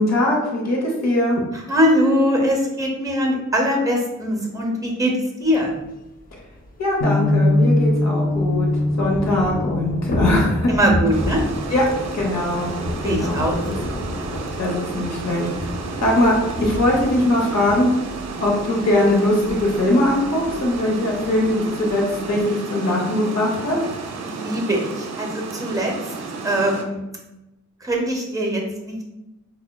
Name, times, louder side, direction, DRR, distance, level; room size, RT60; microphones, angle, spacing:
voice 1, 0.0-1.4 6.8-8.7 9.0-10.7 11.7-11.8 12.1-12.7 13.0-13.7 14.6-15.7 16.0-17.9 18.4-23.8, left 1 dB, 65° left, -2 dB, 0.8 m, -21 dB
voice 2, 1.5-5.1 5.4-5.7 10.7-11.4 13.0-13.9 24.2-26.1 26.4-27.0 27.8-29.0, equal, 10° right, 0 dB, 0.6 m, -21 dB
Thunder / Rain, 5.8-5.9 6.1-6.2 6.5-22.4, left 1 dB, 30° left, 0.4 m, -32 dB
sound 1, 7.0-13.1, left 1 dB, 50° left, 1.3 m, -23 dB
Water, 11.1-26.8, right 4 dB, 65° right, 0.5 m, -32 dB
4.7 x 2.1 x 2.2 m, 0.95 s
wide cardioid pair, 155°, 29 cm